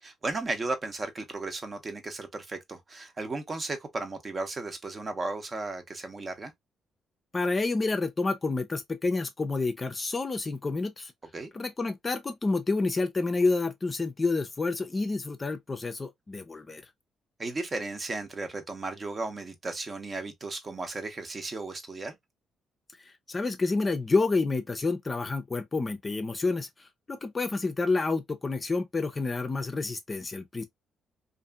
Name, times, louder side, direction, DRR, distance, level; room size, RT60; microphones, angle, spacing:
voice 1, 0.0-6.5 11.3-11.5 17.4-22.2, right 3 dB, 35° right, 0.7 m, -35 dB
voice 2, 7.3-11.1 11.5-16.8 23.3-30.6, left 3 dB, 30° left, 0.5 m, -29 dB
2.7 x 2.5 x 2.2 m
cardioid pair, 90°, 0 cm